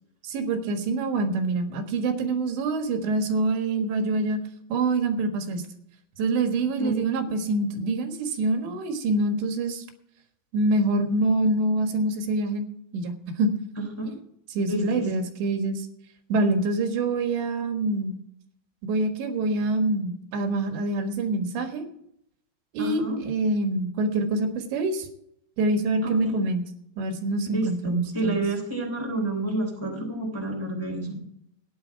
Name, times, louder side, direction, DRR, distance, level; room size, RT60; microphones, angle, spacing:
voice 1, 0.2-4.4 4.7-5.6 6.2-9.8 10.5-12.7 12.9-13.5 14.5-15.9 16.3-18.2 18.8-21.9 22.7-25.1 25.6-26.6 27.0-28.4, right 2 dB, 80° right, 6 dB, 3.8 m, -25 dB
voice 2, 13.8-14.2 14.7-15.1 22.8-23.2 26.0-26.4 27.5-31.2, right 2 dB, 10° left, 0 dB, 2.1 m, -29 dB
14.0 x 10.0 x 4.6 m, 0.73 s
omnidirectional pair, 5.1 m